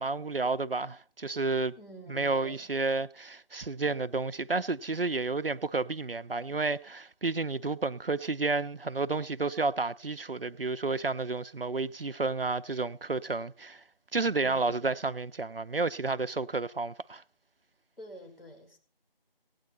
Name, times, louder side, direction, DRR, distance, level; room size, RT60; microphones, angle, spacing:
voice 1, 0.0-1.8 2.1-13.8 14.1-17.2, right 3 dB, 70° right, 0.7 m, -31 dB
voice 2, 1.7-2.7 18.0-18.8, right 1 dB, 70° left, 5.2 m, -48 dB
17.5 x 9.6 x 4.2 m
figure-of-eight pair, 175°, 30 cm